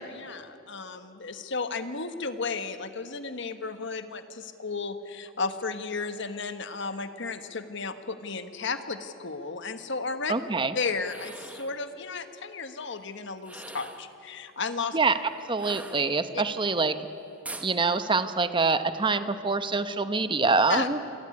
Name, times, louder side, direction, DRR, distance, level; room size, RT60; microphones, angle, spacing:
voice 1, 0.0-10.3 10.7-15.0 16.3-16.4 20.7-20.9, left 4 dB, 60° left, 9 dB, 1.5 m, -34 dB
voice 2, 10.3-10.8 14.9-15.2 15.5-17.0 17.6-21.0, right 4 dB, 25° right, 10 dB, 1.0 m, -25 dB
sound 1, 11.0-11.8 13.4-14.1 15.6-16.5 17.4-17.7, right 2 dB, 5° right, 1.3 m, -42 dB
26.5 x 18.0 x 9.9 m, 2.8 s
head